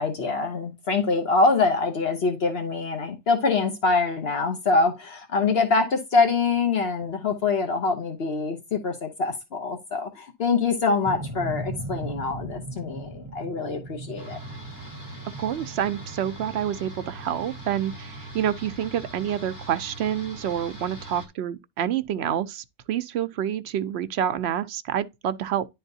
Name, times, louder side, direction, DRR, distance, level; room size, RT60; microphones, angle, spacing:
voice 1, 0.0-14.4, left 4 dB, 65° left, 1.1 m, -24 dB
sound 1, 11.0-19.3, right 2 dB, 25° right, 1.6 m, -39 dB
sound 2, 14.2-21.3, right 1 dB, 15° left, 1.8 m, -41 dB
voice 2, 15.4-25.7, right 10 dB, 70° right, 0.8 m, -28 dB
10.5 x 3.9 x 2.7 m
omnidirectional pair, 1.1 m